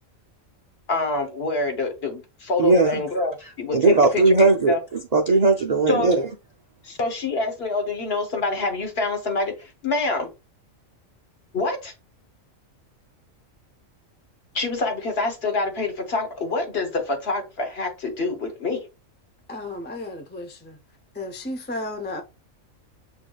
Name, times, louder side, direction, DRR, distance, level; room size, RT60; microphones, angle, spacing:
voice 1, 0.9-4.8 5.9-6.1 6.8-10.3 11.5-11.9 14.5-18.9, left 3 dB, 50° left, 1.3 m, -26 dB
voice 2, 2.6-3.0 3.7-6.3, right 3 dB, 50° right, 0.5 m, -18 dB
voice 3, 19.5-20.8 21.1-22.2, left 2 dB, 15° left, 0.4 m, -33 dB
7.9 x 2.7 x 2.3 m
omnidirectional pair, 1.4 m